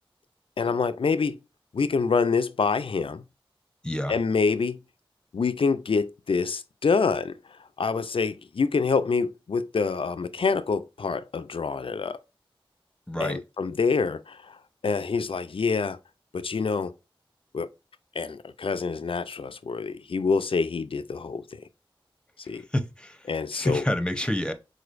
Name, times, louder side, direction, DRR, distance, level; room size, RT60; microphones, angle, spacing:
voice 1, 0.6-1.4 1.7-3.2 4.1-4.8 5.3-7.3 7.8-12.2 13.2-14.6 14.8-16.0 16.3-16.9 17.5-17.7 18.2-21.6 22.5-22.6 23.3-23.8, left 5 dB, 70° left, 0.4 m, -26 dB
voice 2, 3.8-4.2 13.1-13.4 22.4-24.5, left 1 dB, 10° left, 0.8 m, -29 dB
4.9 x 3.9 x 2.5 m
wide cardioid pair, 45°, 10 cm